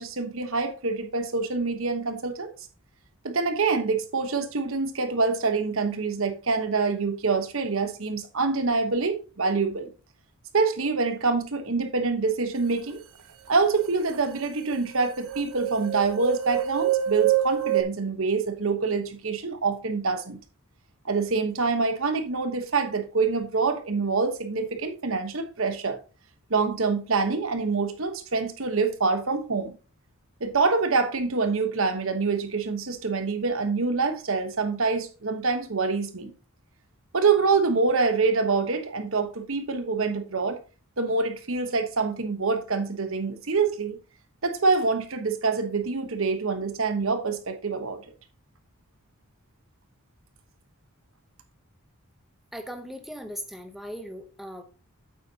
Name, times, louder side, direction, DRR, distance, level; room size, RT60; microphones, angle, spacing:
voice 1, 0.0-2.5 3.2-9.9 10.5-13.0 13.5-20.4 21.0-26.0 26.5-29.8 30.4-36.3 37.1-40.6 41.0-44.0 44.4-48.0, right 4 dB, 65° right, 1.1 m, -26 dB
sound 1, 13.8-13.9 14.1-17.8, right 12 dB, 85° right, 0.9 m, -27 dB
voice 2, 52.5-54.6, equal, ahead, 0.8 m, -38 dB
8.5 x 8.2 x 2.8 m
head